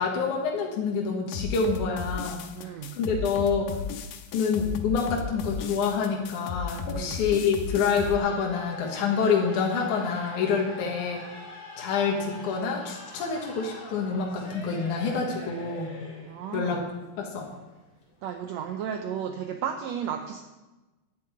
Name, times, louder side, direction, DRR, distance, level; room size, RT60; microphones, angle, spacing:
voice 1, 0.0-2.7 3.0-3.7 4.3-11.2 11.8-15.9 16.5-16.8 17.2-17.5, left 5 dB, 65° left, 0 dB, 2.9 m, -27 dB
sound 1, 1.3-8.2, left 6 dB, 80° left, 2.5 m, -35 dB
voice 2, 2.5-3.0 6.9-7.2 10.7-10.8 16.3-16.8 18.2-20.4, right 8 dB, 80° right, 5 dB, 1.5 m, -34 dB
sound 2, 8.0-18.9, left 3 dB, 45° left, 3.3 m, -44 dB
11.0 x 7.9 x 8.6 m, 1.1 s
omnidirectional pair, 4.0 m